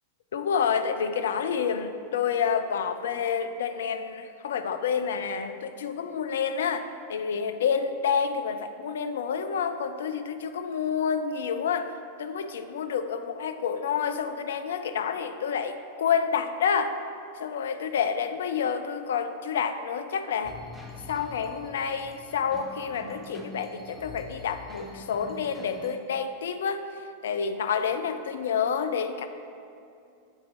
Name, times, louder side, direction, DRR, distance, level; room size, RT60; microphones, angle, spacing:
voice 1, 0.3-11.9 12.2-17.0 17.4-20.6 21.1-26.9 27.2-29.3, left 7 dB, 60° left, 8 dB, 0.4 m, -29 dB
sound 1, 20.4-25.9, left 2 dB, ahead, 0.8 m, -45 dB
8.1 x 4.3 x 3.8 m, 2.5 s
figure-of-eight pair, 90°, 0 cm